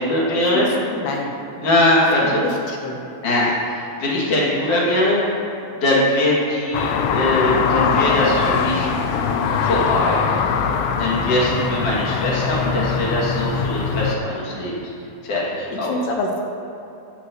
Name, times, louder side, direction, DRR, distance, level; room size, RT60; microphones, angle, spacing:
voice 1, 0.0-0.7 1.6-2.4 3.2-5.2 5.8-8.9 9.6-10.2 11.0-14.7 15.2-15.9, left 1 dB, 40° left, -6 dB, 3.0 m, -21 dB
voice 2, 0.5-1.4 2.2-3.1 15.7-16.4, left 2 dB, 70° left, 0 dB, 3.0 m, -27 dB
sound 1, 6.7-14.2, left 6 dB, 90° left, 2.2 m, -22 dB
15.5 x 11.0 x 3.2 m, 2.9 s
omnidirectional pair, 5.2 m